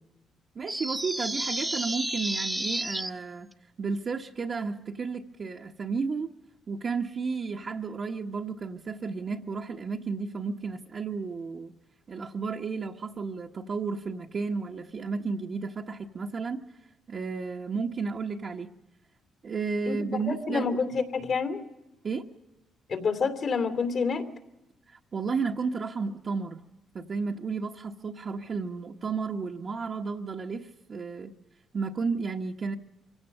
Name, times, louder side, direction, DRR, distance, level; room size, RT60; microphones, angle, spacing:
voice 1, 0.5-3.5 3.8-6.3 6.7-11.7 12.1-16.6 17.1-18.7 19.4-20.8 22.0-22.3 24.9-26.6 26.9-31.3 31.7-32.8, right 4 dB, 45° right, -2 dB, 1.1 m, -32 dB
sound 1, 0.7-3.1, right 1 dB, 10° right, 0.8 m, -31 dB
voice 2, 19.9-21.6 22.9-24.2, left 5 dB, 60° left, 7 dB, 2.8 m, -28 dB
24.5 x 16.5 x 6.6 m, 0.99 s
cardioid pair, 90°, 0 cm